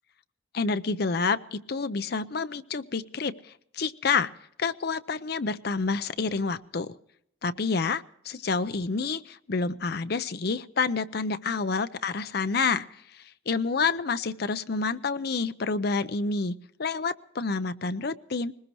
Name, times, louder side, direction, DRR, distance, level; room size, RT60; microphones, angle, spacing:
voice 1, 0.5-3.3 3.7-4.3 4.6-6.9 7.4-12.9 13.5-18.5, left 4 dB, 50° left, 12 dB, 0.6 m, -28 dB
20.5 x 20.0 x 3.1 m, 0.72 s
head